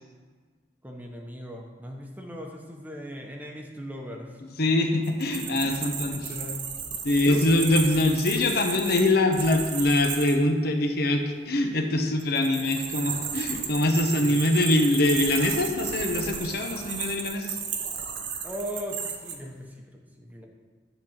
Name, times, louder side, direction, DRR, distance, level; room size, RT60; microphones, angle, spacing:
voice 1, 0.8-4.5 5.6-6.7 7.1-7.4 18.4-20.5, equal, 10° right, 1 dB, 0.9 m, -39 dB
voice 2, 4.6-6.3 7.0-17.6, left 1 dB, 60° left, 4 dB, 0.9 m, -23 dB
sound 1, 5.0-10.4 12.2-19.4, right 7 dB, 90° right, 1.0 m, -34 dB
10.5 x 4.0 x 7.3 m, 1.5 s
head